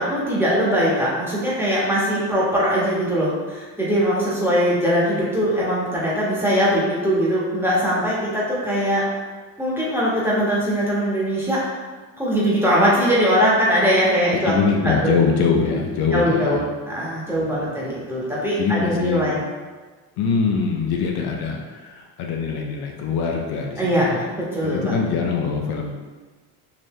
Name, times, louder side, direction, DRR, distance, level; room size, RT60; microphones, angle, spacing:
voice 1, 0.0-9.0 9.6-11.6 12.2-14.5 14.8-15.1 16.1-16.6 16.9-19.4 23.8-24.1 24.3-25.0, equal, 5° right, -7 dB, 1.4 m, -21 dB
voice 2, 14.4-16.7 17.3-17.7 18.6-19.3 20.2-24.2 24.6-25.9, left 5 dB, 65° left, 1 dB, 0.6 m, -23 dB
4.0 x 2.7 x 3.1 m, 1.4 s
cardioid pair, 95°, 41 cm